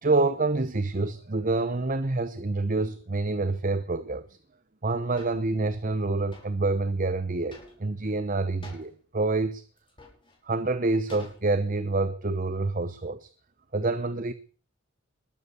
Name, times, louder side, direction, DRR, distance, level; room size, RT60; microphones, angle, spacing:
voice 1, 0.0-4.3 4.8-9.6 10.4-13.3 13.7-14.3, right 3 dB, 40° right, 0.8 m, -27 dB
sound 1, 5.2-5.4 6.3-6.6 7.5-8.0 8.6-8.9 9.8-10.4 11.1-11.7, left 1 dB, 25° left, 5.8 m, -49 dB
21.0 x 9.6 x 6.9 m
head